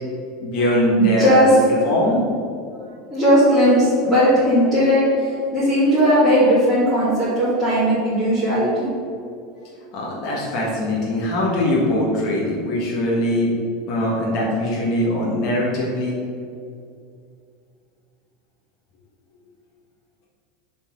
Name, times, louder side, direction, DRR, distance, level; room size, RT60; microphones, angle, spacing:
voice 1, 0.4-1.4 1.7-2.2 9.9-13.5 13.9-16.2, left 1 dB, 40° left, -4 dB, 1.5 m, -21 dB
voice 2, 0.9-1.9 3.1-8.9, equal, 5° left, -13 dB, 1.8 m, -17 dB
6.3 x 4.2 x 6.2 m, 2.3 s
supercardioid pair, 175°, 0 cm